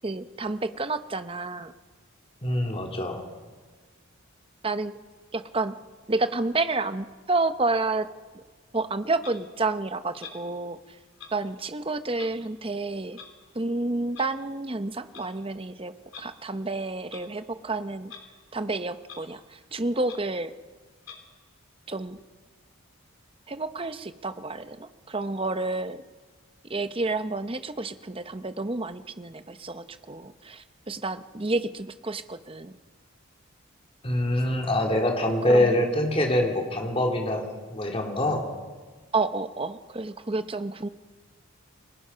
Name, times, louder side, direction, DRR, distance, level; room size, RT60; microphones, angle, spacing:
voice 1, 0.0-1.7 4.6-5.0 5.3-5.8 6.1-8.1 8.3-8.4 8.7-11.0 11.3-13.2 13.5-18.1 18.5-20.5 21.9-22.2 23.5-26.0 26.6-32.7 35.5-35.9 39.1-40.9, right 3 dB, 25° right, 11 dB, 0.8 m, -30 dB
voice 2, 2.4-3.2 34.0-37.4 37.7-38.5, left 1 dB, 25° left, 1 dB, 3.0 m, -24 dB
Clock, 9.2-9.4 10.2-10.4 11.2-11.3 12.1-12.3 13.1-13.3 14.1-14.3 15.0-15.3 16.1-16.3 17.1-17.3 18.0-18.2 18.6-18.7 19.0-19.2 19.6-19.7 20.0-20.2 21.0-21.2, left 6 dB, 75° left, 3.4 m, -44 dB
30.0 x 20.5 x 5.7 m, 1.4 s
head